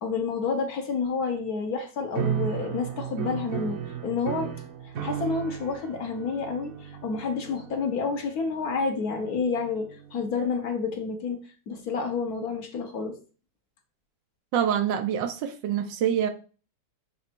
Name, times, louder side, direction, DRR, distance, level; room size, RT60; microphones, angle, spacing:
voice 1, 0.0-4.5 4.8-13.2, left 4 dB, 60° left, 1.5 m, -29 dB
sound 1, 2.1-10.5, right 8 dB, 60° right, 1.1 m, -35 dB
voice 2, 14.5-16.3, right 9 dB, 85° right, 1.5 m, -26 dB
6.3 x 3.4 x 4.5 m
omnidirectional pair, 1.9 m